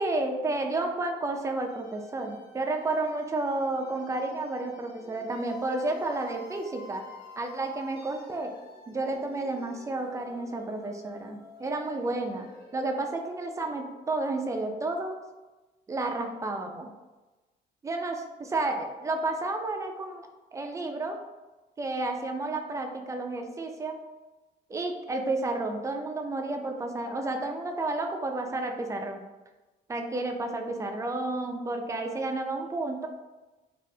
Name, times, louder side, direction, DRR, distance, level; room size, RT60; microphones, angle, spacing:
voice 1, 0.0-7.1 7.4-8.5 8.9-15.2 15.9-16.9 17.8-21.2 21.8-24.0 24.7-29.2 29.9-33.1, right 2 dB, 20° right, 4 dB, 0.4 m, -31 dB
sound 1, 1.5-14.3, left 1 dB, 65° left, 0.7 m, -51 dB
3.3 x 2.4 x 2.6 m, 1.1 s
cardioid pair, 110°, 17 cm